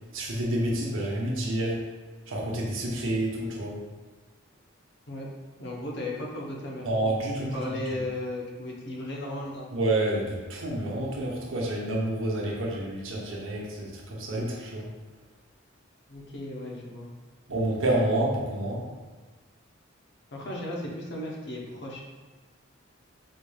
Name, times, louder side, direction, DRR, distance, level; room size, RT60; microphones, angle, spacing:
voice 1, 0.1-1.7 2.3-3.8 6.8-7.6 7.9-8.0 9.7-14.9 17.5-18.8, right 1 dB, 75° right, -3 dB, 0.8 m, -28 dB
voice 2, 5.6-6.9 7.4-9.7 16.1-17.1 20.3-22.0, left 1 dB, 60° left, -2 dB, 0.7 m, -35 dB
4.2 x 3.2 x 2.3 m, 1.3 s
head